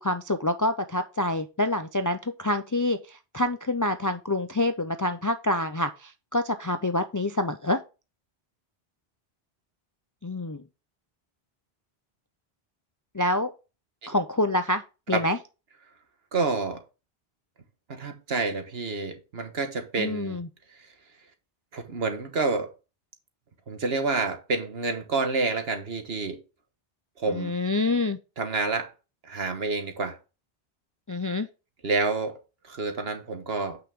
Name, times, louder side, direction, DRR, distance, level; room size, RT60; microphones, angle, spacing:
voice 1, 0.0-7.8 10.2-10.6 13.1-13.5 14.1-14.8 15.1-15.4 20.0-20.5 27.3-28.2 31.1-31.5, left 1 dB, 30° left, 0.3 m, -27 dB
voice 2, 16.3-16.8 17.9-20.4 21.7-22.7 23.7-26.4 27.2-27.5 28.4-28.9 29.2-30.2 31.8-32.4 32.6-33.8, right 3 dB, 70° right, 1.6 m, -28 dB
8.6 x 5.8 x 3.6 m
omnidirectional pair, 1.1 m